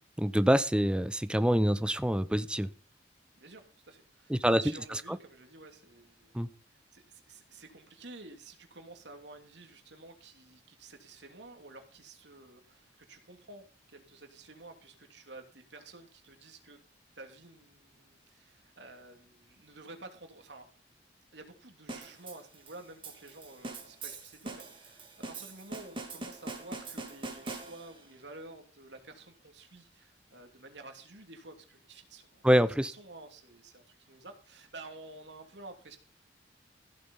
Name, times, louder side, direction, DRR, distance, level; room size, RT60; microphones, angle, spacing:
voice 1, 0.2-2.7 4.3-4.6 4.9-5.2 6.3-6.5 32.4-32.9, equal, 5° right, 13 dB, 0.7 m, -26 dB
voice 2, 3.4-6.3 6.9-16.8 17.2-20.7 21.3-32.4 32.9-36.0, right 2 dB, 80° right, 5 dB, 2.9 m, -51 dB
sound 1, 21.9-28.1, right 2 dB, 30° right, 2.7 m, -43 dB
15.5 x 8.3 x 5.6 m, 0.36 s
head